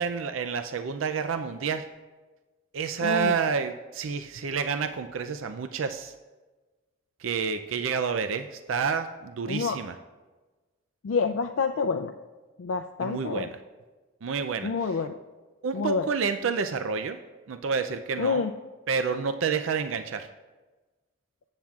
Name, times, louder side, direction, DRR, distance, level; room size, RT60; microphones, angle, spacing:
voice 1, 0.0-1.9 2.7-6.1 7.2-9.9 13.0-13.5 14.2-14.7 15.6-17.2 17.5-18.4 18.9-20.3, right 6 dB, 80° right, 9 dB, 0.4 m, -29 dB
voice 2, 3.0-3.3 9.5-9.8 11.0-12.1 12.6-13.5 14.6-15.2 15.7-16.1 18.2-18.5, left 5 dB, 80° left, 6 dB, 0.4 m, -28 dB
19.0 x 7.4 x 2.4 m, 1.3 s
head